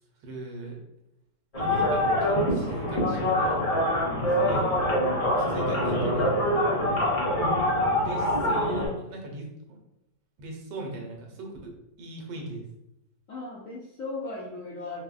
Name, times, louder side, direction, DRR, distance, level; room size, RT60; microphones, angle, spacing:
voice 1, 0.2-0.8 1.5-3.6 4.4-4.7 5.3-6.3 8.0-9.8 10.4-11.7 12.0-12.6, right 2 dB, 85° right, 0 dB, 1.4 m, -38 dB
sound 1, 1.5-8.9, left 1 dB, 45° left, 0.4 m, -25 dB
voice 2, 4.0-4.7 13.3-15.0, left 2 dB, 70° left, -3 dB, 0.8 m, -38 dB
3.9 x 2.0 x 2.3 m, 0.86 s
omnidirectional pair, 1.8 m